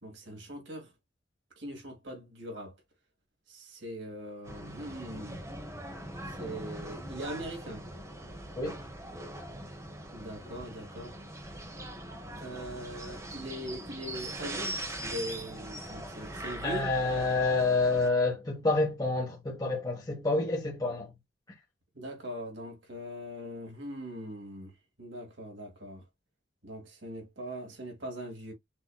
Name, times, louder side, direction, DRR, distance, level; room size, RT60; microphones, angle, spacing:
voice 1, 0.0-0.9 1.6-2.8 3.5-5.4 6.3-7.9 10.1-11.2 12.4-16.9 21.9-24.7 25.0-26.0 26.6-28.5, equal, 80° right, 2.4 m, -41 dB
sound 1, 4.4-18.1, right 1 dB, 15° right, 1.0 m, -41 dB
voice 2, 16.6-21.1, left 3 dB, 20° left, 1.3 m, -28 dB
6.1 x 3.0 x 2.3 m
head